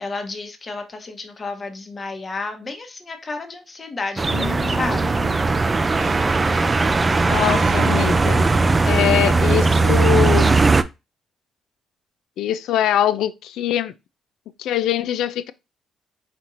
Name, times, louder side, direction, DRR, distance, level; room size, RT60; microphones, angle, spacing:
voice 1, 0.0-5.2, left 3 dB, 35° left, 1.1 m, -32 dB
sound 1, 4.2-10.8, right 3 dB, 25° right, 0.3 m, -18 dB
voice 2, 4.3-5.3 7.2-8.5 8.9-10.6 12.4-13.9 14.6-15.5, left 11 dB, 85° left, 0.4 m, -23 dB
Animal, 4.5-5.4 5.9-6.7 6.9-9.9, right 6 dB, 65° right, 0.7 m, -35 dB
4.3 x 4.2 x 2.5 m
cardioid pair, 90°, 0 cm